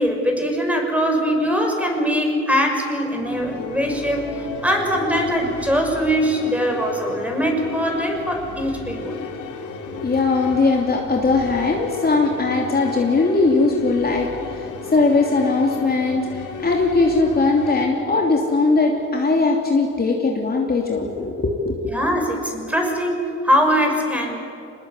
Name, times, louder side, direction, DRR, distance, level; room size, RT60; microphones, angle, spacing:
voice 1, 0.0-9.2 21.9-24.4, equal, 5° right, 2 dB, 5.8 m, -22 dB
sound 1, 3.2-17.9, left 5 dB, 75° left, 3.5 m, -34 dB
voice 2, 9.8-14.3 14.9-21.9, left 3 dB, 30° left, 0 dB, 3.0 m, -19 dB
26.0 x 20.5 x 8.5 m, 2.8 s
cardioid pair, 90°, 30 cm